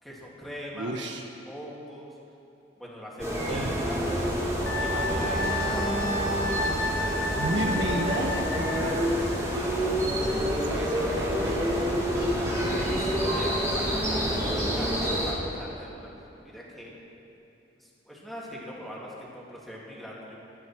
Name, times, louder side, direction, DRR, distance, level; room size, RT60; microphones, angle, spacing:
voice 1, 0.0-0.9 1.5-2.2 2.8-4.1 4.8-6.7 12.7-14.9 15.2-16.9 17.8-20.4, equal, ahead, -5 dB, 2.9 m, -41 dB
voice 2, 0.7-1.3 3.5-3.9 7.1-12.0 12.4-13.1, right 1 dB, 70° right, 2 dB, 1.3 m, -34 dB
sound 1, 3.2-15.3, equal, 15° right, 3.3 m, -28 dB
Wind instrument woodwind instrument, 4.7-9.0, left 1 dB, 75° left, 1.5 m, -31 dB
27.0 x 9.7 x 4.6 m, 2.8 s
head